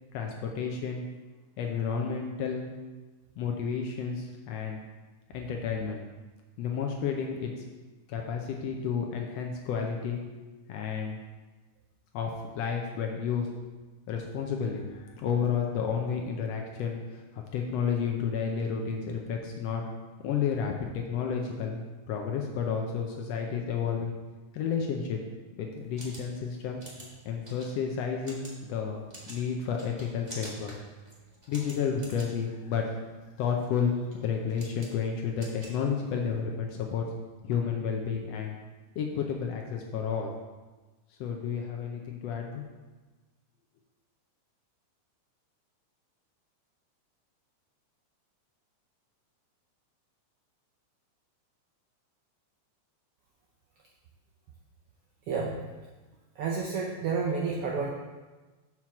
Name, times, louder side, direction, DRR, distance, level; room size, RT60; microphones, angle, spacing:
voice 1, 0.1-1.0 1.6-2.6 3.4-4.8 5.3-6.0 6.6-7.5 8.1-10.2 10.7-11.2 12.1-13.5 14.1-19.8 20.2-24.1 24.5-25.2 25.6-26.8 27.2-30.7 31.5-32.9 33.4-37.1 37.4-38.5 39.0-40.3 41.2-42.6, left 6 dB, 75° left, 1 dB, 1.5 m, -31 dB
sound 1, 25.7-36.4, right 1 dB, 35° right, 0.6 m, -49 dB
voice 2, 55.3-55.6 56.4-57.9, right 5 dB, 85° right, -2 dB, 1.3 m, -30 dB
7.3 x 4.6 x 5.8 m, 1.3 s
omnidirectional pair, 3.5 m